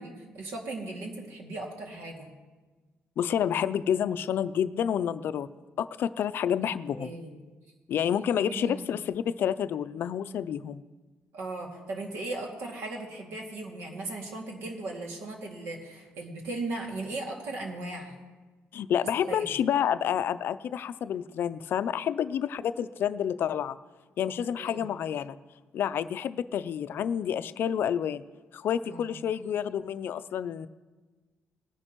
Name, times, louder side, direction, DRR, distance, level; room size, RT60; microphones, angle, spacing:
voice 1, 0.0-2.3 6.9-7.4 8.5-8.9 11.3-18.2 19.3-19.5 24.6-24.9 28.8-29.1, right 2 dB, 85° right, 0 dB, 2.3 m, -37 dB
voice 2, 3.2-5.5 5.8-7.1 7.9-10.8 18.7-23.8 24.2-25.4 25.7-28.2 28.5-30.7, left 9 dB, 55° left, 14 dB, 0.4 m, -29 dB
19.0 x 11.0 x 3.0 m, 1.3 s
cardioid pair, 165°, 4 cm